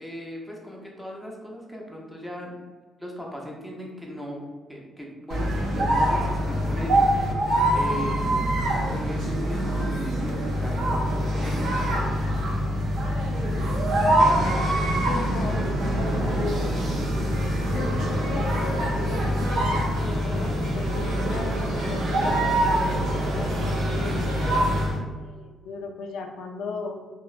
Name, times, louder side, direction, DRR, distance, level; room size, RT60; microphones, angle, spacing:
voice 1, 0.0-2.6 3.0-7.1 7.7-8.4 8.9-11.0 11.3-11.6, equal, ahead, -3 dB, 0.6 m, -37 dB
sound 1, 5.3-25.0, right 1 dB, 80° right, 0.5 m, -24 dB
voice 2, 15.1-16.9 17.4-24.2 25.2-27.1, left 4 dB, 80° left, 3 dB, 0.4 m, -37 dB
2.9 x 2.0 x 2.4 m, 1.4 s
cardioid pair, 90°, 0 cm